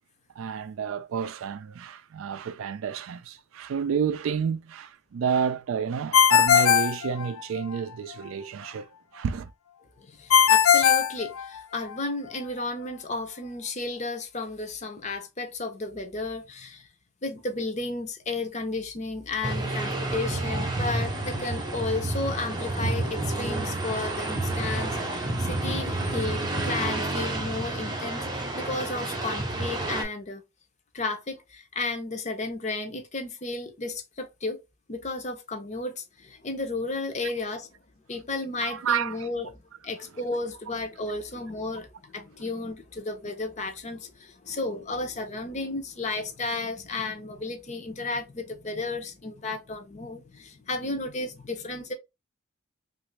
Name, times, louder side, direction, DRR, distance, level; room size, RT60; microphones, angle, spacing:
voice 1, 0.4-9.5 38.6-39.3 44.5-44.6, right 7 dB, 70° right, 0.3 m, -30 dB
Ringtone, 6.1-7.8 10.3-11.9, left 8 dB, 75° left, 0.3 m, -19 dB
voice 2, 10.0-16.9 17.2-30.4 30.9-34.6 34.9-37.7 38.1-39.5 39.8-51.9, left 3 dB, 35° left, 0.6 m, -33 dB
sound 1, 19.4-30.0, right 2 dB, 20° right, 0.6 m, -29 dB
2.9 x 2.5 x 3.0 m
head